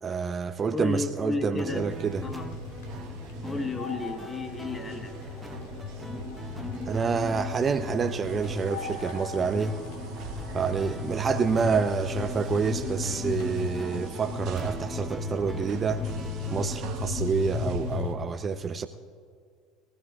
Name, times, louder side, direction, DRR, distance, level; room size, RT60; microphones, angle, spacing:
voice 1, 0.0-2.2 6.9-9.8 10.5-16.0 16.5-18.9, right 5 dB, 30° right, 9 dB, 0.7 m, -28 dB
voice 2, 0.7-2.5 3.4-5.4, left 3 dB, 20° left, 5 dB, 1.7 m, -33 dB
sound 1, 1.6-16.8, right 2 dB, 10° right, 0.9 m, -44 dB
sound 2, 1.6-18.0, right 7 dB, 55° right, 1.2 m, -47 dB
sound 3, 1.7-18.1, left 4 dB, 70° left, 2.5 m, -35 dB
22.5 x 16.5 x 2.5 m, 2.2 s
hypercardioid pair, 70°, 0 cm